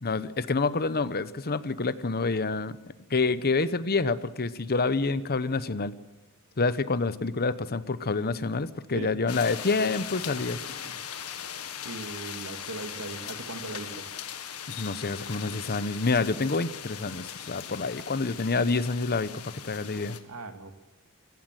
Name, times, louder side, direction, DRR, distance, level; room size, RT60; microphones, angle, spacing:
voice 1, 0.0-2.8 3.1-5.9 6.6-10.6 14.7-19.3 19.6-20.2, left 3 dB, 45° left, 15 dB, 0.9 m, -27 dB
sound 1, 9.3-20.2, left 8 dB, 85° left, 1.8 m, -39 dB
voice 2, 11.8-14.1 20.2-20.7, right 3 dB, 75° right, 7 dB, 2.3 m, -39 dB
23.0 x 15.5 x 9.1 m, 1.1 s
head